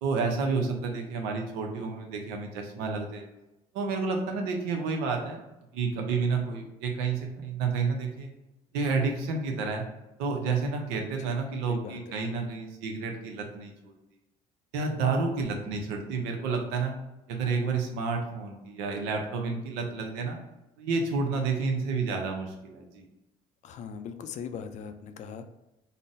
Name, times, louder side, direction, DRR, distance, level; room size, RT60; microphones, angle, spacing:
voice 1, 0.0-3.2 3.7-5.4 5.7-8.3 8.7-9.9 10.2-13.9 14.7-17.0 17.3-20.4 20.8-23.1, right 4 dB, 90° right, 3 dB, 0.6 m, -30 dB
voice 2, 11.7-12.2 23.6-25.5, left 7 dB, 55° left, 9 dB, 0.4 m, -40 dB
3.9 x 2.1 x 2.5 m, 0.96 s
supercardioid pair, 85°, 15 cm